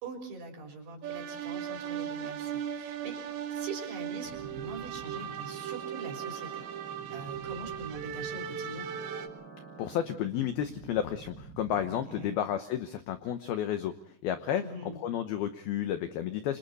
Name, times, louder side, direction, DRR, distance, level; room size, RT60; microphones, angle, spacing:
voice 1, 0.0-3.2 3.5-6.7 7.1-8.9 12.1-12.4 14.6-15.0, right 3 dB, 60° right, 2 dB, 5.3 m, -43 dB
sound 1, 1.0-9.3, right 9 dB, 80° right, 4.5 m, -37 dB
sound 2, 4.2-12.4, right 4 dB, 25° right, 3.9 m, -48 dB
voice 2, 9.8-13.9 14.2-16.6, left 10 dB, 80° left, 9 dB, 2.2 m, -32 dB
28.5 x 26.0 x 4.1 m, 0.62 s
omnidirectional pair, 5.7 m